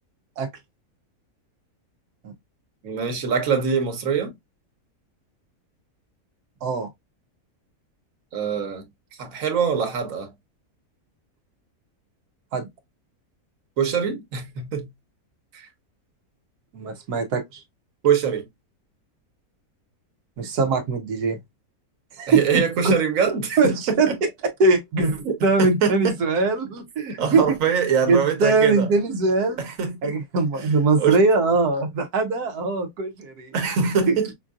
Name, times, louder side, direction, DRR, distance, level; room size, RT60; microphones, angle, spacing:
voice 1, 2.8-4.3 8.3-8.8 9.2-10.3 13.8-14.9 15.5-15.7 18.0-18.5 22.3-24.2 25.2-26.2 27.1-28.9 29.6-30.1 31.0-31.2 33.5-34.3, right 6 dB, 65° right, 1.5 m, -23 dB
voice 2, 16.7-17.6 20.4-21.4 22.2-22.9 23.6-24.1 24.6-27.5 28.1-29.6 30.0-33.5 34.1-34.2, right 3 dB, 90° right, 1.4 m, -21 dB
5.4 x 2.6 x 2.4 m
omnidirectional pair, 1.6 m